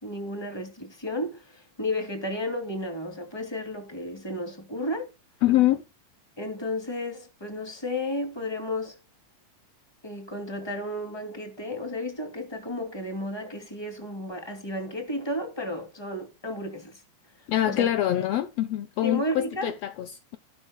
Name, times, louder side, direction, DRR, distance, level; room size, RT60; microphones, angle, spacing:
voice 1, 0.0-5.1 6.4-9.0 10.0-17.0 17.6-17.9 19.0-19.7, left 1 dB, 10° left, 2.2 m, -33 dB
voice 2, 5.4-5.8 17.5-20.4, left 13 dB, 85° left, 1.4 m, -25 dB
13.5 x 12.0 x 2.2 m
omnidirectional pair, 3.8 m